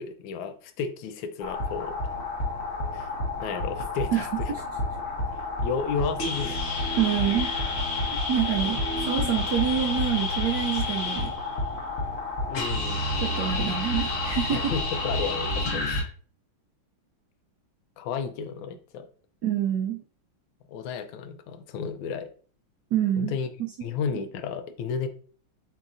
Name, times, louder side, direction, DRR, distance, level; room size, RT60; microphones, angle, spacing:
voice 1, 0.0-1.9 2.9-3.1 3.4-4.5 5.6-6.6 12.5-13.0 14.5-16.0 18.0-19.1 20.7-22.3 23.2-23.5 23.8-25.1, left 6 dB, 75° left, 8 dB, 1.3 m, -32 dB
sound 1, 1.4-16.0, left 2 dB, 45° left, 1.2 m, -29 dB
voice 2, 4.1-4.6 7.0-7.5 8.1-8.8 9.1-11.3 13.2-14.7 19.4-20.0 22.9-23.3 23.8-23.9, right 9 dB, 75° right, 2 dB, 1.0 m, -26 dB
7.3 x 2.8 x 2.5 m, 0.43 s
omnidirectional pair, 2.3 m